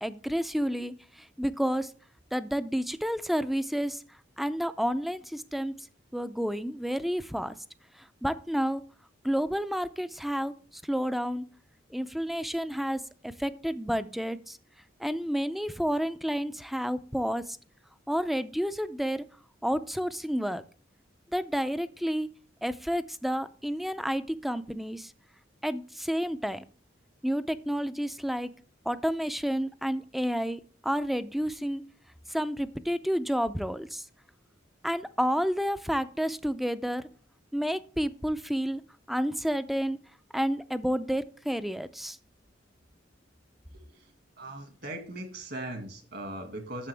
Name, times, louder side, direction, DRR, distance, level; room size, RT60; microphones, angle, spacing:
voice 1, 0.0-0.9 1.4-1.9 2.3-4.0 4.4-5.7 6.1-7.5 8.2-8.8 9.2-10.5 10.9-11.4 11.9-14.6 15.0-17.4 18.1-19.2 19.6-20.6 21.3-22.3 22.6-25.1 25.6-26.6 27.2-28.5 28.9-31.8 32.3-34.0 34.8-37.0 37.5-38.8 39.1-40.0 40.3-42.2, equal, ahead, 13 dB, 0.4 m, -30 dB
voice 2, 43.7-44.1 44.4-46.9, right 1 dB, 60° right, 5 dB, 1.9 m, -39 dB
9.7 x 6.9 x 3.4 m, 0.41 s
head